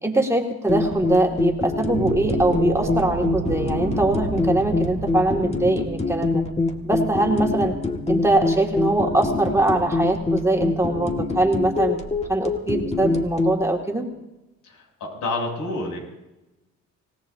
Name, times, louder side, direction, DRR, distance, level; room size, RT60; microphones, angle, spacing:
voice 1, 0.0-6.4 6.8-7.7 8.1-12.0 12.3-14.1, right 2 dB, 10° right, 0 dB, 2.3 m, -22 dB
sound 1, 0.7-13.6, left 3 dB, 20° left, 1.9 m, -25 dB
sound 2, 1.9-8.2, right 7 dB, 75° right, 1.4 m, -32 dB
voice 2, 15.0-16.0, left 2 dB, 75° left, 0 dB, 7.8 m, -27 dB
27.0 x 17.5 x 2.8 m, 0.99 s
cardioid pair, 90°, 30 cm